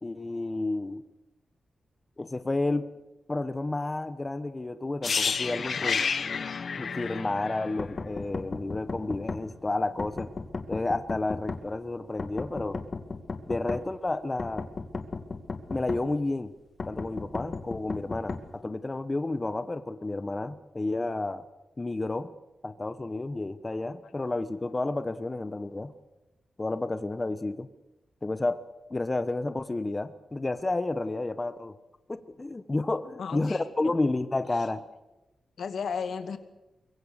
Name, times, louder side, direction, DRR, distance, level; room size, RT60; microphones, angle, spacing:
voice 1, 0.0-1.0 2.2-2.9 3.3-6.0 6.8-10.3 10.7-12.8 13.5-14.7 15.7-16.5 16.9-21.5 21.8-22.3 22.6-25.9 26.6-27.7 28.2-28.6 28.9-31.8 32.1-34.8, left 2 dB, 20° left, 12 dB, 1.0 m, -31 dB
sound 1, 5.0-8.9 9.1-9.3, left 5 dB, 55° left, 1.1 m, -30 dB
sound 2, 7.8-9.4 10.0-11.6 12.2-13.8 14.4-16.0 16.8-18.4, left 4 dB, 40° left, 2.3 m, -34 dB
voice 2, 33.2-33.9 35.6-36.4, left 6 dB, 70° left, 8 dB, 2.3 m, -34 dB
25.0 x 23.0 x 6.5 m, 1.0 s
wide cardioid pair, 115°, 0 cm